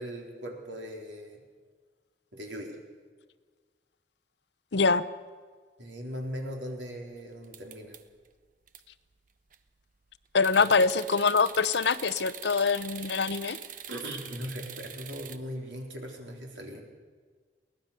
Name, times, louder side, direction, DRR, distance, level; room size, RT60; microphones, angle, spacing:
voice 1, 0.0-1.4 2.3-2.8 5.8-8.0 10.6-10.7 13.9-16.8, equal, 85° right, 1 dB, 4.0 m, -39 dB
voice 2, 4.7-5.0 10.3-13.6, left 4 dB, 75° left, 15 dB, 0.8 m, -24 dB
sound 1, 7.4-8.3 8.7-8.8 9.3-9.7 10.4-15.4, right 9 dB, 45° right, 1.0 m, -43 dB
23.0 x 18.0 x 6.8 m, 1.5 s
head